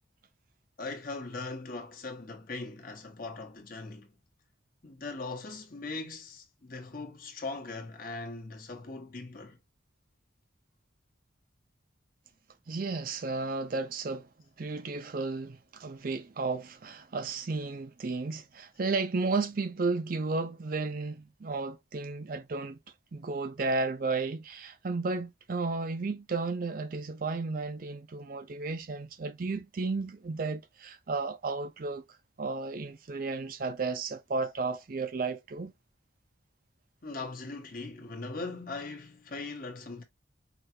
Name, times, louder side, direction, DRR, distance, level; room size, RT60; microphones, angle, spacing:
voice 1, 0.8-4.1 4.8-9.6 37.0-40.0, left 3 dB, 45° left, 1.0 m, -40 dB
voice 2, 12.7-14.3 14.6-22.8 23.1-32.0 32.4-35.7, right 3 dB, 45° right, 0.5 m, -33 dB
4.8 x 2.4 x 2.7 m
head